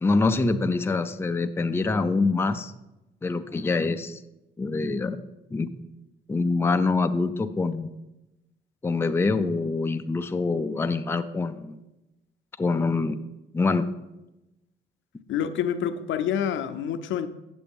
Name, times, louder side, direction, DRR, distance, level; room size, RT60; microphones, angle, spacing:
voice 1, 0.0-2.7 3.2-4.2 4.6-5.2 5.5-5.7 6.3-7.9 8.8-11.8 12.6-13.2 13.5-13.9, left 3 dB, 10° left, 0.4 m, -25 dB
voice 2, 15.3-17.3, left 8 dB, 75° left, 0.6 m, -27 dB
8.5 x 6.9 x 3.5 m
cardioid pair, 90°, 20 cm